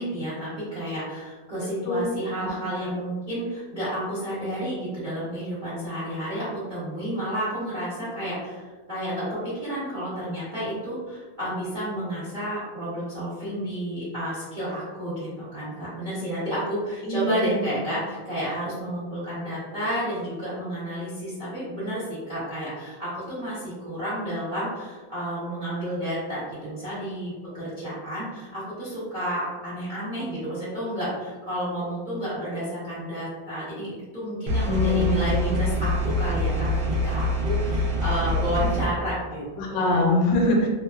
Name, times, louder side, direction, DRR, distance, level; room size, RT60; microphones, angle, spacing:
voice 1, 0.0-39.8, equal, 45° right, -11 dB, 0.6 m, -31 dB
voice 2, 17.0-17.7 34.7-35.2 39.6-40.7, left 1 dB, 80° left, 0 dB, 1.2 m, -23 dB
sound 1, 34.5-38.9, left 1 dB, 75° right, 1.2 m, -25 dB
2.9 x 2.2 x 2.2 m, 1.4 s
omnidirectional pair, 2.0 m